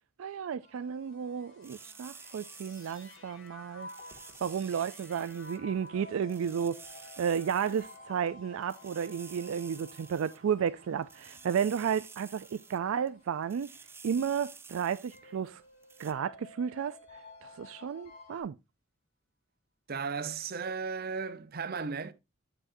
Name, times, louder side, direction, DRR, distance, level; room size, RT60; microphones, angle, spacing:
voice 1, 0.2-3.9 4.4-6.8 7.2-13.7 14.0-15.6 16.0-17.0 17.4-18.6, right 7 dB, 75° right, 0.3 m, -32 dB
sound 1, 0.6-18.4, left 3 dB, 50° left, 4.0 m, -56 dB
sound 2, 0.9-12.4 13.1-13.9, left 2 dB, 65° left, 2.0 m, -55 dB
sound 3, 1.6-3.5 3.8-5.6 5.9-6.0 6.2-8.0 8.3-8.4 8.6-10.7 11.0-12.8 13.1-13.2 13.4-15.2 15.5-15.6 15.8-16.1, right 5 dB, 10° right, 0.4 m, -51 dB
voice 2, 19.9-22.1, right 5 dB, 45° right, 0.7 m, -35 dB
7.8 x 7.4 x 2.6 m
head